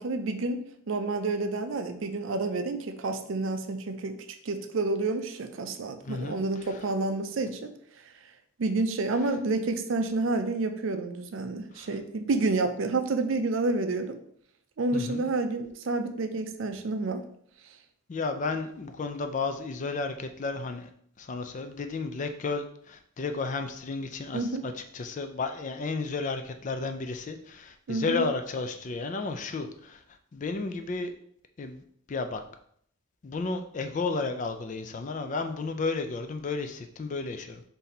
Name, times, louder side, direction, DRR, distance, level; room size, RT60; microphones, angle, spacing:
voice 1, 0.0-4.2 4.4-7.7 8.6-14.2 14.8-17.2 24.3-24.7 27.9-28.3, right 3 dB, 60° right, 7 dB, 0.4 m, -29 dB
voice 2, 6.0-6.4 11.7-11.9 14.9-15.3 18.1-20.9 21.2-30.0 30.3-31.1 31.6-31.8 32.1-32.4 33.2-37.6, left 3 dB, 35° left, 7 dB, 0.3 m, -32 dB
4.1 x 2.7 x 4.1 m, 0.65 s
head